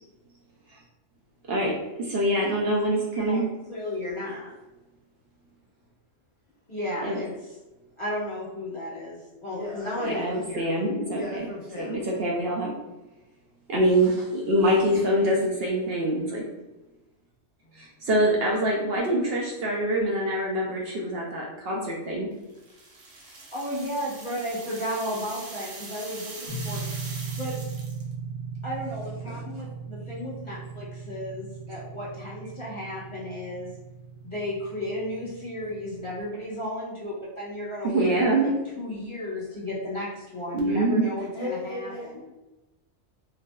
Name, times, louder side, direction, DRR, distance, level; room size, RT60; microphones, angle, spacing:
voice 1, 2.0-3.4 7.0-7.2 10.0-11.5 11.8-12.7 13.7-16.4 17.7-22.3 29.3-29.4 37.8-38.5 40.5-41.0 41.4-41.5, right 1 dB, 65° right, -3 dB, 0.7 m, -25 dB
voice 2, 3.2-4.5 6.7-7.3 8.0-10.8 18.1-18.3 23.5-26.8 27.4-27.5 28.6-33.7 34.2-42.2, left 1 dB, 25° left, -8 dB, 0.9 m, -34 dB
voice 3, 9.5-10.6 11.1-12.0 17.6-17.8 35.9-36.0 41.2-42.2, left 2 dB, 45° left, -6 dB, 0.4 m, -36 dB
sound 1, 22.5-28.1, right 3 dB, 90° right, 1.0 m, -42 dB
sound 2, 26.5-36.2, right 5 dB, 10° right, 0.4 m, -38 dB
3.2 x 2.5 x 2.2 m, 1.1 s
omnidirectional pair, 1.3 m